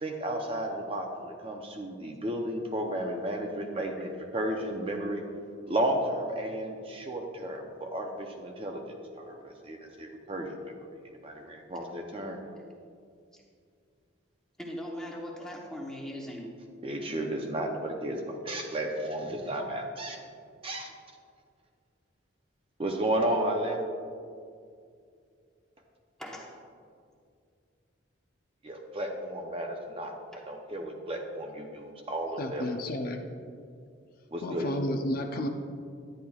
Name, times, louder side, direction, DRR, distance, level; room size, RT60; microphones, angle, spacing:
voice 1, 0.0-5.2 5.7-8.8 9.1-10.7 11.2-12.5 16.8-20.2 20.6-20.9 22.8-23.8 28.6-30.1 30.5-32.7 34.3-34.7, right 1 dB, 25° right, 3 dB, 0.6 m, -33 dB
voice 2, 14.6-16.5 26.2-26.5 30.3-30.4, equal, 5° left, -1 dB, 0.9 m, -39 dB
voice 3, 32.4-33.3 34.4-35.5, left 1 dB, 45° left, 4 dB, 0.5 m, -32 dB
10.5 x 9.9 x 2.3 m, 2.3 s
head